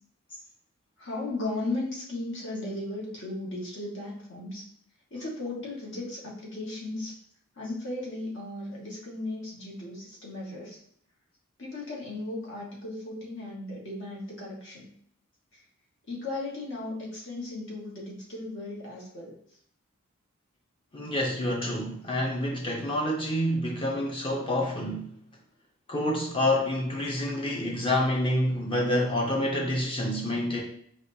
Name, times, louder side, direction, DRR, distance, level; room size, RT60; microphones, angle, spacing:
voice 1, 1.0-4.6 5.1-7.2 7.5-10.8 11.6-14.9 15.5-15.6 16.1-19.4, left 2 dB, 65° left, -4 dB, 1.2 m, -36 dB
voice 2, 20.9-25.1 25.9-30.6, left 1 dB, 25° left, -2 dB, 0.6 m, -27 dB
4.9 x 2.3 x 2.6 m, 0.64 s
head